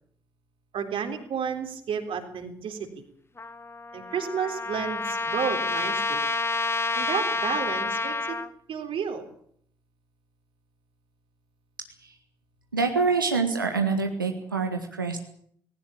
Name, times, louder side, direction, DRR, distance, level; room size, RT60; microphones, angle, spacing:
voice 1, 0.7-3.0 3.9-6.2 6.9-8.4 8.7-9.3, right 7 dB, 55° right, 5 dB, 3.8 m, -31 dB
Trumpet, 3.4-8.5, left 3 dB, 25° left, 1.6 m, -29 dB
voice 2, 12.7-15.2, right 4 dB, 90° right, 4 dB, 1.6 m, -26 dB
19.5 x 17.5 x 8.7 m, 0.64 s
figure-of-eight pair, 40°, 11 cm